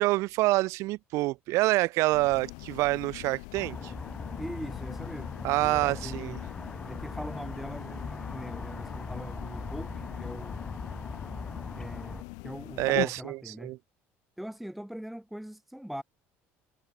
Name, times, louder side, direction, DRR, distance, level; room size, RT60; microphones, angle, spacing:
voice 1, 0.0-3.9 5.4-6.4 12.8-13.8, right 20 dB, 65° right, 0.3 m, -27 dB
sound 1, 2.1-13.1, left 35 dB, 80° left, 0.8 m, -42 dB
sound 2, 3.6-12.2, left 3 dB, 15° left, 0.9 m, -40 dB
voice 2, 4.4-6.4 6.9-10.6 11.8-12.2 12.4-13.7 14.4-16.0, equal, ahead, 0.5 m, -41 dB
supercardioid pair, 110°, 5 cm